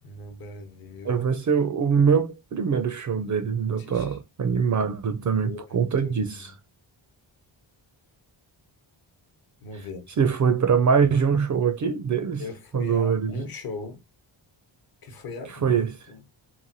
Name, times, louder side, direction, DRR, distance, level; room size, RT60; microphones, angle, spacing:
voice 1, 0.0-1.3 3.6-4.2 5.0-6.5 9.6-10.1 12.4-14.0 15.0-16.2, left 3 dB, 50° left, 0.9 m, -40 dB
voice 2, 1.1-6.5 10.2-12.4 12.7-13.4 15.6-15.9, right 6 dB, 40° right, 0.4 m, -23 dB
3.1 x 2.2 x 2.5 m
cardioid pair, 95°, 47 cm